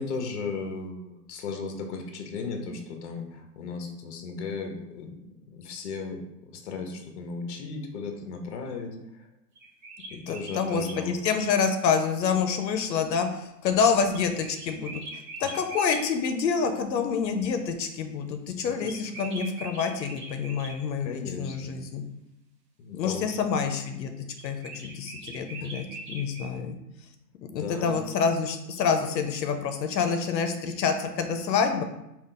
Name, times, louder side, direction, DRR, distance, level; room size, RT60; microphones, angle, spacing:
voice 1, 0.0-5.2 5.5-9.2 10.1-11.2 15.4-15.5 18.7-19.0 21.0-21.7 22.8-23.6 24.8-25.1 25.6-25.7 27.5-28.0, left 4 dB, 45° left, 4 dB, 0.7 m, -36 dB
sound 1, 9.5-11.0 14.1-16.1 18.8-20.8 24.3-26.5, right 2 dB, 30° right, 0.7 m, -41 dB
voice 2, 10.3-15.0 15.4-22.0 22.9-24.1 24.4-24.6 24.8-26.8 27.5-31.8, left 6 dB, 80° left, 6 dB, 0.7 m, -27 dB
3.6 x 2.5 x 3.7 m, 0.86 s
hypercardioid pair, 150°, 50 cm